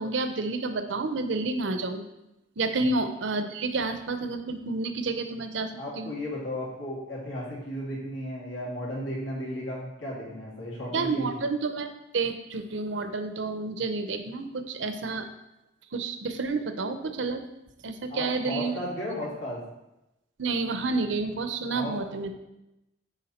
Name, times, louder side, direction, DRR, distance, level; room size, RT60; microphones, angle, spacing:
voice 1, 0.0-2.0 2.6-5.7 6.0-6.1 10.9-15.3 15.9-17.5 17.8-18.8 20.4-22.3, right 3 dB, 80° right, 8 dB, 0.7 m, -30 dB
voice 2, 5.8-11.3 18.1-19.6 21.7-21.9, left 1 dB, 85° left, -5 dB, 2.6 m, -34 dB
10.0 x 3.5 x 4.2 m, 0.91 s
head